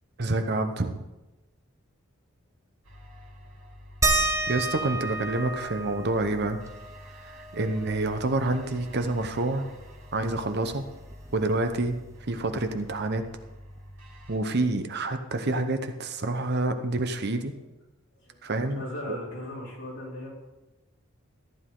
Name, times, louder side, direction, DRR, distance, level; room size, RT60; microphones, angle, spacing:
voice 1, 0.2-0.9 4.5-6.6 7.2-9.7 10.1-10.8 11.3-12.0 12.3-13.2 14.3-17.5 18.4-18.8 19.1-19.2, right 2 dB, 50° right, 7 dB, 0.9 m, -28 dB
sound 1, 2.8-14.4, equal, 80° right, 2.8 m, -48 dB
sound 2, 4.0-9.2 9.5-9.6 9.9-11.7 13.0-13.1 13.8-13.9, right 2 dB, 15° right, 0.8 m, -32 dB
voice 2, 18.1-20.3, left 1 dB, 60° left, -4 dB, 3.9 m, -38 dB
14.0 x 10.5 x 3.8 m, 1.1 s
head